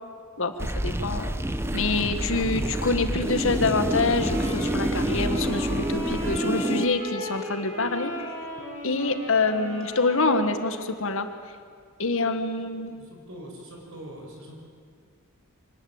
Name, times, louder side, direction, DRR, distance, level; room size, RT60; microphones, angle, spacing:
voice 1, 0.4-1.3 1.7-8.3 8.8-11.3 12.0-13.0, left 3 dB, 65° left, 8 dB, 1.7 m, -26 dB
sound 1, 0.6-6.8, right 1 dB, 10° right, 0.9 m, -28 dB
Wind instrument woodwind instrument, 4.1-11.1, left 1 dB, 35° right, 7.7 m, -37 dB
voice 2, 13.0-14.6, right 1 dB, 65° right, 1 dB, 6.0 m, -42 dB
24.5 x 19.0 x 8.9 m, 2.1 s
head